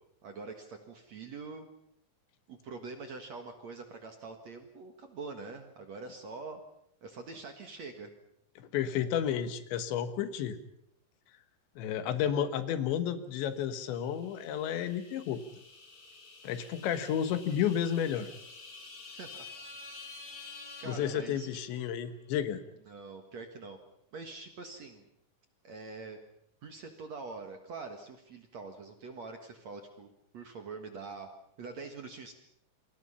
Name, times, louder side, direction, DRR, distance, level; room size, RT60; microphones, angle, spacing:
voice 1, 0.2-1.7 2.5-6.6 7.0-8.1 19.1-19.5 20.8-21.8 22.9-23.8 24.1-25.1 25.6-26.2 26.6-31.3 31.6-32.3, right 4 dB, 55° right, 5 dB, 2.2 m, -44 dB
voice 2, 8.6-10.6 11.8-15.4 16.4-18.3 20.8-22.6, left 9 dB, 80° left, 10 dB, 3.7 m, -32 dB
sound 1, 13.8-21.8, left 3 dB, 50° left, 6.5 m, -50 dB
29.0 x 24.5 x 5.7 m, 0.72 s
omnidirectional pair, 5.2 m